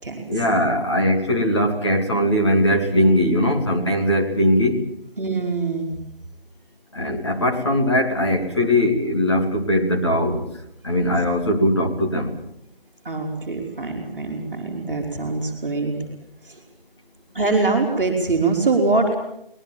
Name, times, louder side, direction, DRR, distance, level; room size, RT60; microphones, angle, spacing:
voice 1, 0.3-4.8 6.9-10.4 10.8-12.3, equal, 30° left, 1 dB, 2.6 m, -20 dB
voice 2, 5.2-5.9 13.0-15.9 17.3-19.1, right 3 dB, 20° right, -10 dB, 3.9 m, -23 dB
26.0 x 20.0 x 7.3 m, 0.77 s
figure-of-eight pair, 175°, 29 cm